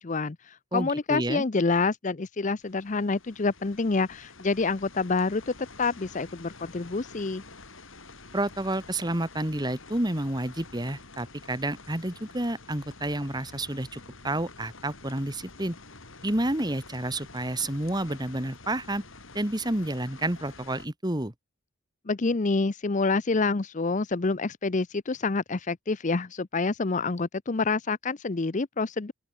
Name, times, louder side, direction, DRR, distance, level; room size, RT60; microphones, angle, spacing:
voice 1, 0.0-7.4 22.1-29.1, left 3 dB, 35° left, 0.6 m, -27 dB
voice 2, 0.7-1.4 8.3-15.8 16.2-19.0 19.3-21.3, right 1 dB, 20° right, 2.1 m, -30 dB
sound 1, 2.6-20.9, left 3 dB, 70° left, 5.8 m, -48 dB
open air
head